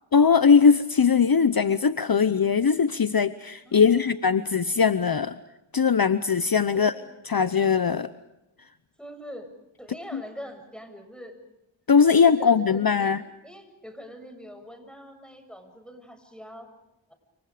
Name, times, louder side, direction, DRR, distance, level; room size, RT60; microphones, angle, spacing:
voice 1, 0.1-5.4 5.7-6.9 7.3-8.1 11.9-13.2, left 6 dB, 50° left, 13 dB, 0.9 m, -20 dB
voice 2, 3.6-4.1 6.7-7.0 9.0-9.5 9.8-11.4 12.1-13.2 13.4-16.7, equal, ahead, 7 dB, 7.4 m, -43 dB
30.0 x 28.0 x 5.1 m, 0.91 s
cardioid pair, 40°, 47 cm